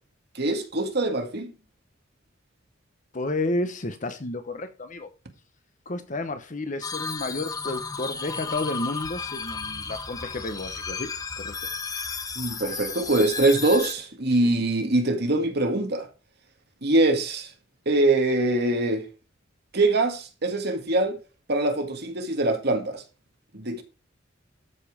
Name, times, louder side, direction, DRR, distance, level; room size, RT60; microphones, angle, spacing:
voice 1, 0.4-1.5 12.4-16.1 16.8-17.5 17.9-19.0 19.7-21.2 21.5-23.0 23.5-23.8, right 2 dB, 55° right, 1.9 m, -23 dB
voice 2, 3.1-5.1 5.9-11.1 11.4-11.5 14.4-14.5, left 2 dB, 40° left, 0.9 m, -31 dB
sound 1, 6.8-13.9, left 5 dB, 20° left, 1.0 m, -33 dB
13.5 x 5.4 x 4.9 m
head